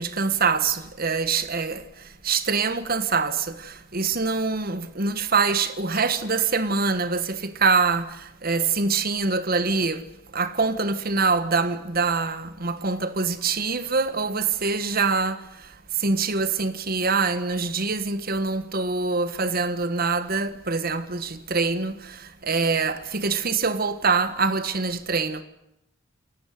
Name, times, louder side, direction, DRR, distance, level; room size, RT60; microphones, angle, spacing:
voice 1, 0.0-1.8 2.2-10.0 10.3-15.4 16.0-25.4, right 4 dB, 45° right, 1.5 m, -24 dB
28.0 x 14.5 x 9.5 m
head